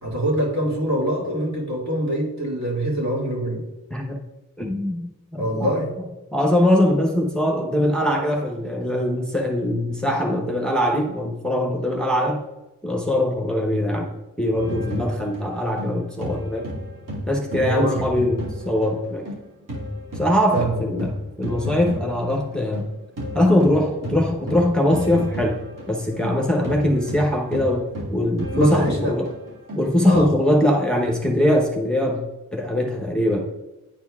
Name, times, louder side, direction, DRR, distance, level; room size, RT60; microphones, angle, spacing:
voice 1, 0.0-3.6 5.4-5.9 17.6-18.0 20.5-20.8 28.5-29.1 30.1-30.3, right 1 dB, 60° right, -3 dB, 2.2 m, -24 dB
voice 2, 3.9-4.2 4.6-5.7 6.3-12.4 12.8-16.7 17.3-19.3 20.1-22.9 23.3-25.6 25.9-29.3 29.8-33.5, left 1 dB, 5° left, 0 dB, 0.9 m, -22 dB
sound 1, 14.6-19.4 19.7-30.2, equal, 75° right, 1.7 m, -32 dB
9.8 x 4.5 x 2.4 m, 1.0 s
cardioid pair, 60°, 32 cm